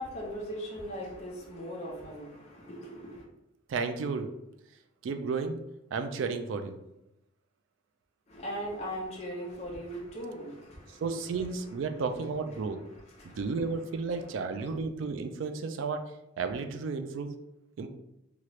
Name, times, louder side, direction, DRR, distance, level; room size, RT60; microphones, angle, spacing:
voice 1, 0.0-3.3 8.3-11.0 11.6-11.7 12.6-12.7 12.9-13.6 14.3-14.8, equal, 35° left, 0.6 m, -39 dB
voice 2, 3.7-4.3 5.0-5.6 5.9-6.8 11.0-12.8 13.4-16.1 16.4-17.3 17.8-17.9, right 4 dB, 80° right, 0.3 m, -32 dB
3.0 x 2.4 x 3.0 m
head